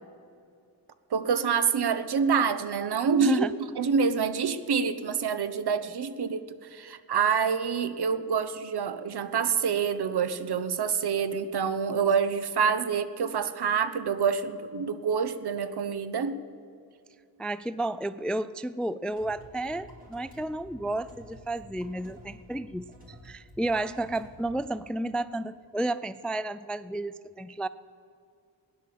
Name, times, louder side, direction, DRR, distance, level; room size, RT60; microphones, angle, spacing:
voice 1, 1.1-3.5 3.8-6.4 6.7-16.4, right 6 dB, 65° right, 12 dB, 0.9 m, -27 dB
voice 2, 3.2-3.5 17.4-22.9 23.2-27.7, right 1 dB, ahead, 16 dB, 0.3 m, -31 dB
sound 1, 19.1-24.6, equal, 20° right, 3.9 m, -51 dB
16.0 x 10.5 x 7.5 m, 2.4 s
cardioid pair, 60°, 43 cm